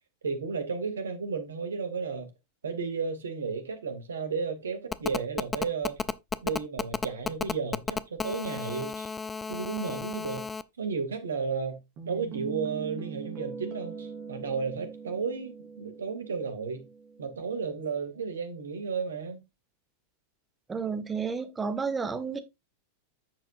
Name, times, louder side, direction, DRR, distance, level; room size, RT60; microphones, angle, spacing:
voice 1, 0.2-2.3 2.6-6.0 6.4-9.1 9.5-10.5 10.8-16.9 17.2-19.4, right 5 dB, 70° right, 2.4 m, -33 dB
Telephone, 4.9-10.6, left 5 dB, 15° left, 0.6 m, -32 dB
sound 1, 12.0-17.7, right 6 dB, 40° right, 3.7 m, -42 dB
voice 2, 20.7-22.4, right 5 dB, 15° right, 1.8 m, -31 dB
10.5 x 7.8 x 2.5 m
figure-of-eight pair, 90°, 0 cm